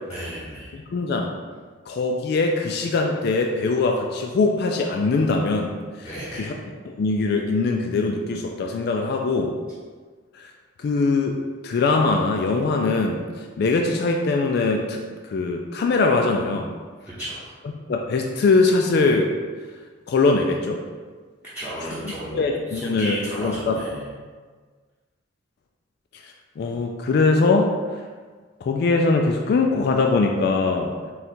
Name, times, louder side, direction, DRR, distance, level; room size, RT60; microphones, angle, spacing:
voice 1, 0.1-0.8 6.0-6.5 17.2-17.5 21.5-24.1, equal, 10° right, -12 dB, 0.8 m, -34 dB
voice 2, 0.7-1.4 1.9-5.7 6.3-6.5 6.9-9.5 10.3-10.5 10.8-11.4 11.6-15.0 15.3-16.7 17.9-19.3 20.1-20.8 22.3-23.8 26.2-27.7 28.6-30.9, left 3 dB, 55° left, 2 dB, 0.3 m, -22 dB
3.8 x 2.4 x 4.2 m, 1.5 s
head